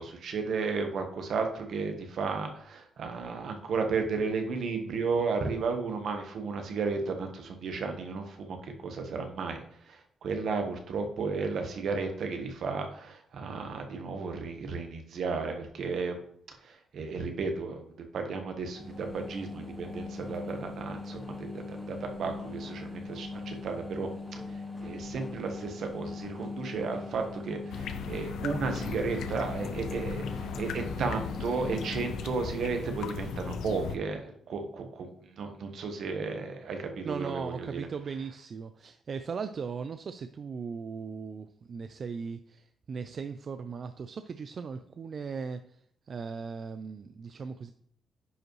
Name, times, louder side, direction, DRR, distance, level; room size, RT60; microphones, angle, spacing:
voice 1, 0.0-16.2 16.6-37.8, right 4 dB, 60° right, 5 dB, 1.2 m, -34 dB
sound 1, 18.7-32.3, left 3 dB, 5° left, 1.1 m, -41 dB
sound 2, 27.7-34.0, left 6 dB, 80° left, 0.6 m, -37 dB
voice 2, 37.0-47.7, right 5 dB, 40° right, 10 dB, 0.3 m, -38 dB
9.8 x 5.0 x 3.1 m, 0.66 s
cardioid pair, 145°, 0 cm